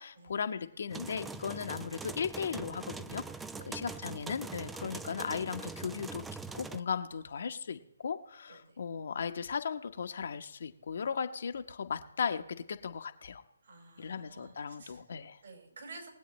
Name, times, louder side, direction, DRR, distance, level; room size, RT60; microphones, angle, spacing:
voice 1, 0.0-3.2 3.7-6.2 6.5-13.4 14.0-15.4, left 6 dB, 60° left, 7 dB, 1.0 m, -37 dB
sound 1, 0.9-6.8, right 4 dB, 5° right, 0.4 m, -43 dB
voice 2, 13.6-15.0 15.4-16.1, right 3 dB, 65° right, -1 dB, 5.0 m, -52 dB
21.5 x 8.4 x 3.1 m, 0.84 s
figure-of-eight pair, 145°, 0 cm